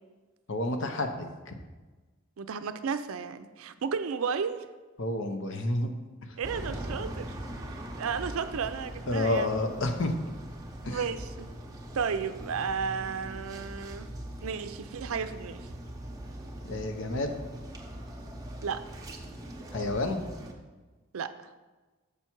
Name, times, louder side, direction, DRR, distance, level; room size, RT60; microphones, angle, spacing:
voice 1, 0.5-1.5 5.0-5.9 9.1-10.1 10.8-11.0 16.7-17.3 19.7-20.2, left 2 dB, 60° left, 6 dB, 0.8 m, -29 dB
voice 2, 2.4-4.7 6.4-7.3 8.0-9.5 10.9-11.5 11.9-14.1 14.4-15.7 18.6-18.8 21.1-21.3, right 6 dB, 70° right, 11 dB, 0.4 m, -33 dB
sound 1, 6.4-20.5, right 1 dB, 15° right, 0.7 m, -41 dB
6.9 x 5.8 x 4.5 m, 1.2 s
head